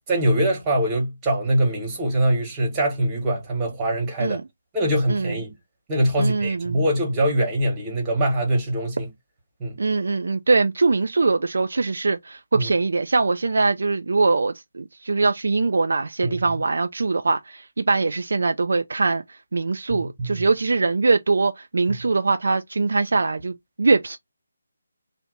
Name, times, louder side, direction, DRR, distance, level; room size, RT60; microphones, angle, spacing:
voice 1, 0.1-4.4 4.7-5.5 5.9-9.1 9.6-9.8 12.5-12.7 16.2-16.4 20.0-20.4, right 1 dB, 15° right, 1.2 m, -23 dB
voice 2, 5.1-5.4 6.2-6.8 9.8-24.2, right 3 dB, 60° right, 0.3 m, -22 dB
2.8 x 2.1 x 3.8 m
figure-of-eight pair, 150°, 0 cm